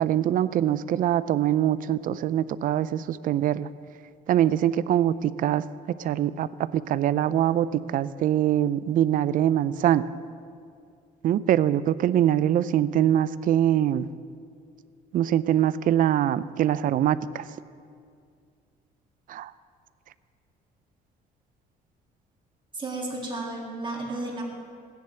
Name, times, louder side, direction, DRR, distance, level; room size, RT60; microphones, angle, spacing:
voice 1, 0.0-3.7 4.3-5.6 6.0-10.0 11.2-14.1 15.1-17.5 19.3-19.5, right 11 dB, 55° right, 17 dB, 0.4 m, -23 dB
voice 2, 22.7-24.4, right 2 dB, 30° right, -2 dB, 2.4 m, -33 dB
17.0 x 10.5 x 3.3 m, 2.3 s
cardioid pair, 110°, 17 cm